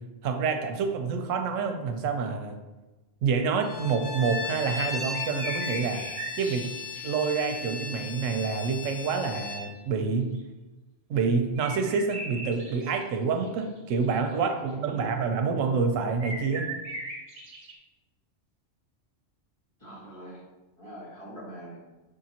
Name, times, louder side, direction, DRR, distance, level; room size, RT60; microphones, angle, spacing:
voice 1, 0.2-2.6 3.2-6.0 6.4-6.7 7.0-10.4 11.1-16.7, right 5 dB, 85° right, 5 dB, 1.0 m, -27 dB
Bowed string instrument, 3.6-9.7, left 4 dB, 45° left, 0.7 m, -36 dB
sound 1, 5.1-7.6 10.4-10.5 11.6-13.0 13.4-14.1 14.3-14.4 16.2-17.7, right 2 dB, 60° right, 1.1 m, -39 dB
voice 2, 14.3-15.2 15.5-15.6 19.8-20.4 20.8-21.8, equal, 25° left, -6 dB, 1.1 m, -43 dB
5.0 x 3.7 x 2.8 m, 1.1 s
omnidirectional pair, 1.3 m